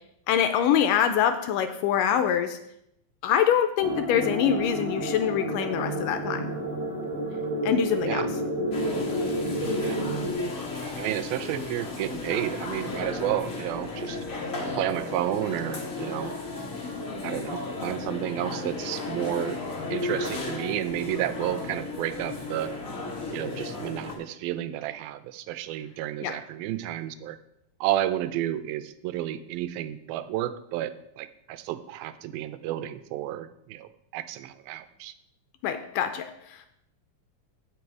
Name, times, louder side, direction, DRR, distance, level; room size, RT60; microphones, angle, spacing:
voice 1, 0.3-2.6 3.2-6.5 7.6-8.3 26.2-26.4 35.6-36.7, left 9 dB, 80° left, 9 dB, 2.0 m, -24 dB
sound 1, 3.8-10.3, right 1 dB, 20° right, 2.8 m, -30 dB
sound 2, 8.7-24.1, left 3 dB, 60° left, 0.8 m, -34 dB
voice 2, 11.0-14.2 14.8-16.3 17.2-19.6 19.9-22.7 23.3-27.4 27.8-35.1, right 13 dB, 90° right, 12 dB, 2.4 m, -31 dB
16.0 x 5.4 x 4.7 m, 0.78 s
omnidirectional pair, 4.2 m